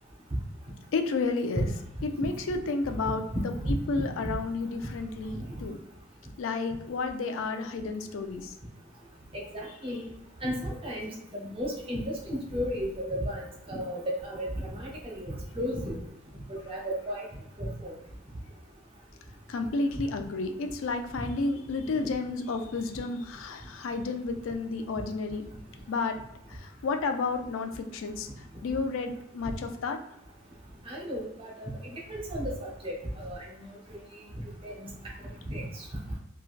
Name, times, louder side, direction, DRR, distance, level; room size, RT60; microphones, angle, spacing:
voice 1, 0.9-1.7 2.0-3.5 3.9-5.8 6.4-8.6 19.5-25.4 25.9-26.2 26.5-30.0, left 3 dB, 75° left, 6 dB, 0.4 m, -31 dB
voice 2, 3.3-3.7 4.2-4.4 9.3-10.1 10.4-16.0 16.5-17.3 17.6-18.0 30.9-33.6 34.6-34.9 35.5-35.6, equal, 30° right, -2 dB, 0.7 m, -34 dB
3.1 x 2.3 x 2.4 m, 0.87 s
head